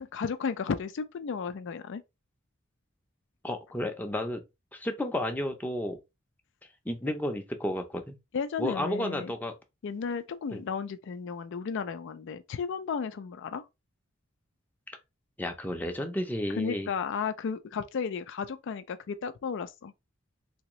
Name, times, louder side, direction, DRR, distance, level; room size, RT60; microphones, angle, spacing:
voice 1, 0.0-2.0 8.3-9.3 9.8-13.6 16.6-19.9, left 5 dB, 60° left, 0.4 m, -34 dB
voice 2, 3.4-4.4 4.7-6.0 6.8-8.1 8.6-9.5 10.5-10.6 15.4-16.9, left 1 dB, 10° left, 0.6 m, -32 dB
3.5 x 2.9 x 3.0 m
head